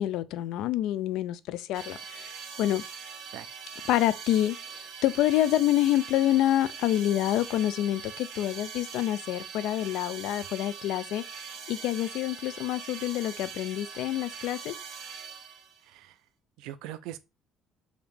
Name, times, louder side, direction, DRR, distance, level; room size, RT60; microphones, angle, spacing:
voice 1, 0.0-2.8 3.9-14.8, left 13 dB, 70° left, 0.4 m, -27 dB
sound 1, 1.7-15.8, right 6 dB, 70° right, 1.4 m, -42 dB
voice 2, 15.8-16.2 16.6-17.2, right 13 dB, 90° right, 0.4 m, -41 dB
4.9 x 2.7 x 3.4 m
cardioid pair, 155°, 0 cm